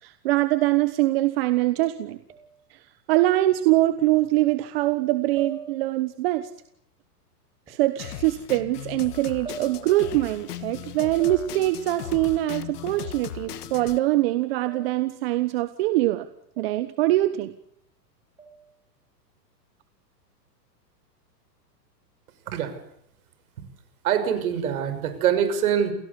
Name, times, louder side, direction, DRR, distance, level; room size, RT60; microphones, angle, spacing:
voice 1, 0.0-2.2 2.7-2.8 3.1-6.5 7.7-16.3 16.6-17.5, right 16 dB, 35° right, 11 dB, 1.2 m, -23 dB
sound 1, 2.3-2.7 3.9-4.0 5.4-6.1 7.7-7.9 9.4-10.1 11.2-11.9 14.7-15.2 16.6-17.0 18.4-18.8, right 4 dB, 10° right, 7.1 m, -42 dB
Drum kit, 8.0-14.0, left 12 dB, 65° left, 2.0 m, -38 dB
voice 2, 24.0-25.9, right 9 dB, 60° right, 10 dB, 6.0 m, -24 dB
28.5 x 17.5 x 8.3 m, 0.74 s
hypercardioid pair, 160°, 49 cm